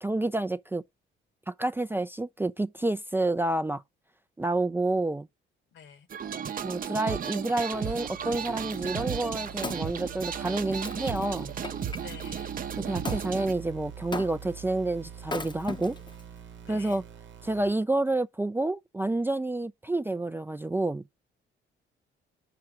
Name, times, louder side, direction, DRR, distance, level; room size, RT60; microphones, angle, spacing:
voice 1, 0.0-0.8 1.5-3.8 4.4-5.3 6.6-11.5 12.8-16.0 16.7-17.0 17.4-21.0, right 2 dB, 10° right, 0.3 m, -29 dB
voice 2, 5.7-6.1 12.0-12.6 16.6-17.0, left 8 dB, 70° left, 1.3 m, -48 dB
sound 1, 6.1-13.5, right 8 dB, 45° right, 0.7 m, -34 dB
sound 2, 7.7-17.7, right 8 dB, 70° right, 0.9 m, -44 dB
Wood, 9.2-12.0 13.1-13.3 14.1-14.6 15.2-16.2 16.9-17.0, left 3 dB, 20° left, 0.7 m, -38 dB
5.8 x 4.8 x 6.0 m
cardioid pair, 90°, 20 cm